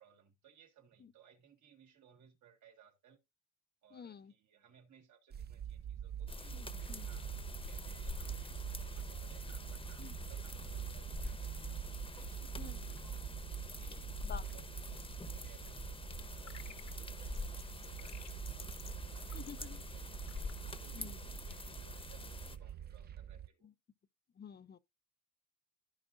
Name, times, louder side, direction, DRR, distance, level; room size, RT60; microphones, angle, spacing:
voice 1, 0.0-3.2 3.8-6.6 7.0-14.1 14.5-18.7 19.0-23.7, right 8 dB, 70° right, 2.1 m, -64 dB
voice 2, 3.9-4.3 6.5-7.1 10.0-10.1 12.6-12.8 14.2-14.4 19.3-19.8 20.9-21.2 23.6-23.7 24.4-24.8, left 7 dB, 35° left, 0.5 m, -50 dB
sound 1, 5.3-23.5, right 9 dB, 35° right, 0.5 m, -45 dB
sound 2, 6.3-22.6, left 3 dB, 20° left, 0.9 m, -46 dB
sound 3, 16.5-21.8, left 8 dB, 60° left, 1.1 m, -58 dB
15.0 x 5.0 x 2.5 m
cardioid pair, 90°, 30 cm